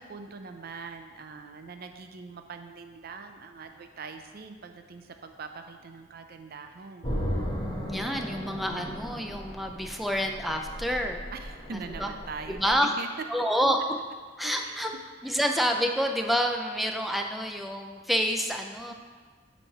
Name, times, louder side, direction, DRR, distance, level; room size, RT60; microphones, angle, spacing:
voice 1, 0.0-7.2 11.3-13.1 14.4-14.8 15.2-15.4 15.8-15.9 18.9-19.0, right 4 dB, 55° right, 6 dB, 0.5 m, -42 dB
sound 1, 7.0-12.8, equal, 25° left, 1.1 m, -36 dB
voice 2, 7.9-11.2 12.0-12.1 12.5-12.9 13.3-13.8 14.4-14.9 15.2-18.9, equal, ahead, 3 dB, 0.4 m, -28 dB
8.0 x 3.2 x 5.8 m, 1.5 s
head